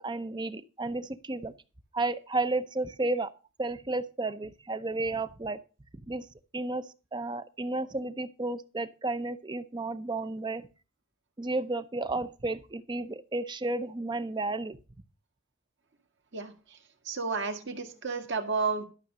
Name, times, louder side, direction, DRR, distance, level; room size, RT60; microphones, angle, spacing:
voice 1, 0.0-1.5 1.9-3.3 3.6-5.6 6.1-6.3 6.5-10.7 11.4-14.8, right 2 dB, 20° right, 13 dB, 0.6 m, -32 dB
voice 2, 17.1-18.8, right 4 dB, 55° right, 6 dB, 1.8 m, -31 dB
12.5 x 6.5 x 6.0 m, 0.34 s
head